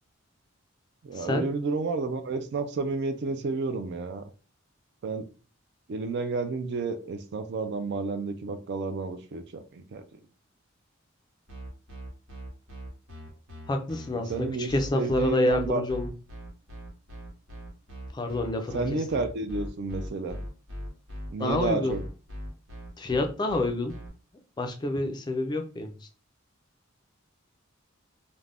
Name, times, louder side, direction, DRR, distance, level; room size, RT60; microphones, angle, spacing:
voice 1, 1.0-4.2 5.0-5.3 5.9-10.2 14.1-15.8 18.7-20.4 21.3-22.0, right 3 dB, 55° right, 8 dB, 0.3 m, -31 dB
sound 1, 11.5-24.1, equal, 85° right, 1.0 m, -40 dB
voice 2, 13.7-16.1 18.1-18.8 21.4-22.0 23.0-23.9 24.6-25.9, left 2 dB, 20° left, 5 dB, 0.3 m, -28 dB
2.5 x 2.1 x 3.3 m, 0.35 s
head